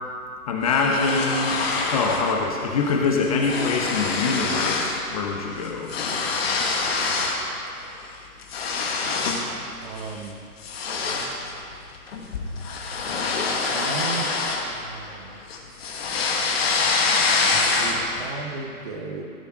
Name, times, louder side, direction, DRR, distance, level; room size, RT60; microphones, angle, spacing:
voice 1, 0.5-1.6 1.9-5.9, left 4 dB, 25° left, 1 dB, 0.9 m, -24 dB
sound 1, 0.7-2.3 2.7-2.9 3.2-5.0 5.3-7.4 7.9-9.5 10.0-10.2 10.6-15.2 15.5-18.2, left 4 dB, 40° left, 1.7 m, -25 dB
voice 2, 9.8-10.4 13.7-14.3 14.6-15.4 17.7-19.2, right 4 dB, 25° right, 3 dB, 1.0 m, -35 dB
16.0 x 6.8 x 7.5 m, 2.4 s
figure-of-eight pair, 140°, 46 cm